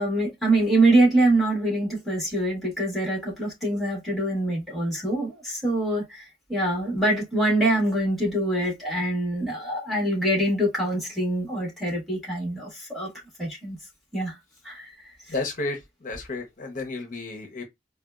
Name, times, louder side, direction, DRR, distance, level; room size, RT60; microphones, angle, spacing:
voice 1, 0.0-6.2 6.5-13.1 13.4-13.8 14.1-14.3 14.6-14.9, right 1 dB, ahead, 1.5 m, -24 dB
voice 2, 15.3-17.6, left 3 dB, 45° left, 0.7 m, -32 dB
4.1 x 2.2 x 2.3 m
head